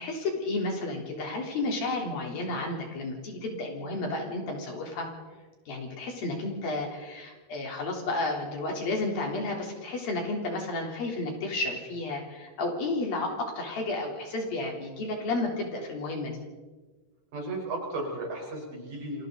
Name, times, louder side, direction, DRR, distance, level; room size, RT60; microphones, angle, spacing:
voice 1, 0.0-5.1 5.7-16.4, left 2 dB, 65° left, 0 dB, 5.4 m, -32 dB
voice 2, 17.3-19.3, right 2 dB, 55° right, 0 dB, 6.2 m, -35 dB
29.5 x 23.0 x 4.0 m, 1.3 s
omnidirectional pair, 4.5 m